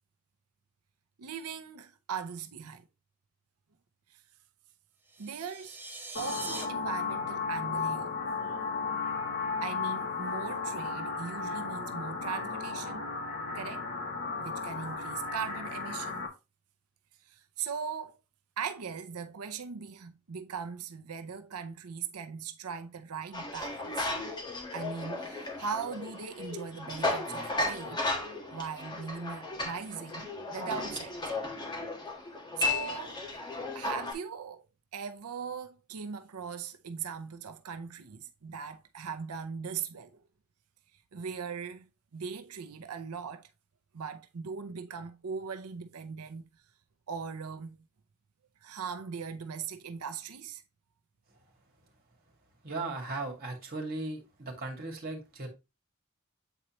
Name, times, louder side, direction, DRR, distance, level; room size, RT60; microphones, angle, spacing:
voice 1, 1.2-2.9 4.1-4.2 5.2-5.8 6.2-8.1 8.4-8.5 9.6-13.1 13.5-13.9 14.4-16.3 17.2-18.2 18.6-24.2 24.7-28.0 28.5-31.2 32.6-33.2 33.7-34.7 34.9-40.2 41.1-43.5 43.9-46.5 47.1-47.8 48.6-50.6, right 6 dB, 80° right, 0.6 m, -39 dB
sound 1, 5.1-6.6, right 2 dB, 10° right, 1.0 m, -42 dB
sound 2, 6.1-16.3, left 4 dB, 55° left, 1.9 m, -34 dB
sound 3, 23.3-34.1, left 2 dB, 20° left, 1.5 m, -35 dB
voice 2, 52.6-55.5, right 2 dB, 45° right, 2.1 m, -37 dB
8.0 x 4.3 x 3.0 m
head